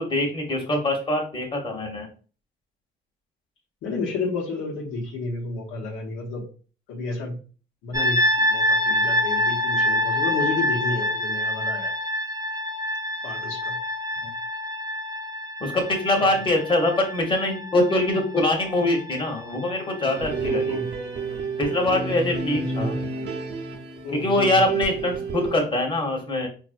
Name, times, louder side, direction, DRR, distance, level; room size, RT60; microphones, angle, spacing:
voice 1, 0.0-2.1 14.2-14.3 15.6-20.8 21.6-23.0 24.1-26.5, left 1 dB, 25° left, 1 dB, 1.0 m, -23 dB
voice 2, 3.8-6.4 6.9-7.3 7.8-8.2 8.5-11.9 13.2-13.8 20.4-20.9 22.5-22.9 24.0-24.6, left 3 dB, 90° left, -1 dB, 0.9 m, -31 dB
sound 1, 7.9-20.8, left 1 dB, 20° right, 0.5 m, -26 dB
sound 2, 20.0-25.6, right 4 dB, 60° right, 0.7 m, -30 dB
4.2 x 2.6 x 2.5 m, 0.38 s
cardioid pair, 90°, 20 cm